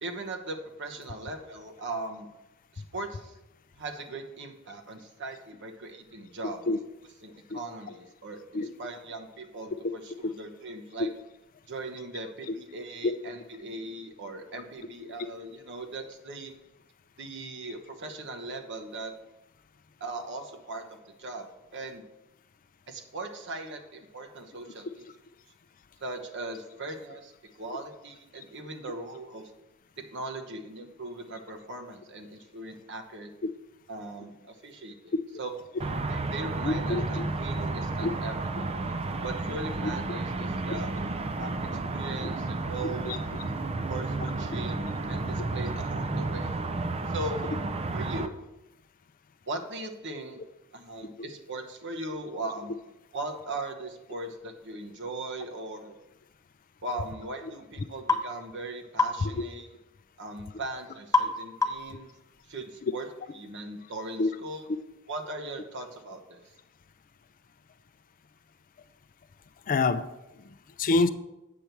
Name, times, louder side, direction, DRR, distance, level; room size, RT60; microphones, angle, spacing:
voice 1, 0.0-2.3 2.7-3.4 3.8-6.6 7.2-11.1 11.7-16.5 17.2-19.1 20.0-22.0 22.9-25.1 26.0-27.3 27.6-29.5 30.1-33.3 33.9-35.5 36.1-38.7 39.2-40.9 41.4-43.1 43.4-43.5 43.9-44.8 45.1-46.5 47.1-47.5 47.9-48.3 49.5-50.4 50.7-52.7 53.1-56.0 56.8-59.7 60.2-62.1 62.5-63.0 63.3-64.6 65.1-66.4, right 2 dB, 55° right, 4 dB, 1.1 m, -39 dB
sound 1, 35.8-48.3, right 3 dB, 30° right, 0.5 m, -32 dB
voice 2, 36.6-37.2 38.0-38.1 43.1-43.2 59.2-59.3 64.2-64.3 69.7-70.0 70.8-71.1, left 3 dB, 40° left, 11 dB, 0.4 m, -25 dB
sound 2, 58.1-58.3 59.0-59.2 61.1-61.4 61.6-61.9, left 3 dB, 15° left, 0.7 m, -24 dB
8.5 x 6.7 x 4.5 m, 0.97 s
head